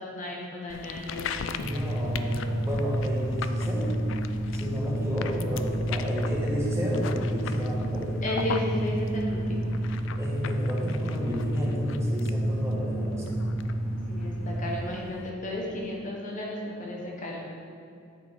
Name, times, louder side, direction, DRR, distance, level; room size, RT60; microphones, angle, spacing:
voice 1, 0.0-1.7 4.4-4.8 8.2-9.7 14.1-17.5, left 1 dB, 40° left, -1 dB, 1.0 m, -34 dB
sound 1, 0.7-15.3, left 6 dB, 70° left, 0.4 m, -40 dB
voice 2, 1.6-3.9 4.5-8.2 10.2-13.4, equal, 15° right, -4 dB, 1.2 m, -31 dB
sound 2, 1.6-14.8, right 1 dB, 35° right, 0.9 m, -30 dB
8.1 x 5.2 x 4.5 m, 2.5 s
head